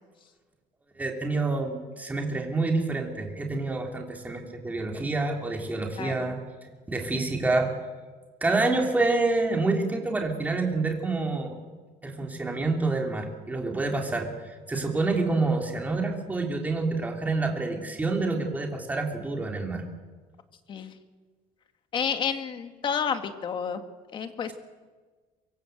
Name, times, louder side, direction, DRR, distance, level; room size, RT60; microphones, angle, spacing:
voice 1, 1.0-6.4 6.9-7.7 8.4-11.6 12.0-19.8, right 3 dB, 10° right, 1 dB, 3.5 m, -27 dB
voice 2, 6.0-6.3 20.7-20.9 21.9-23.8 24.1-24.5, left 7 dB, 35° left, 7 dB, 1.9 m, -30 dB
25.0 x 22.5 x 8.0 m, 1.4 s
cardioid pair, 165°, 15 cm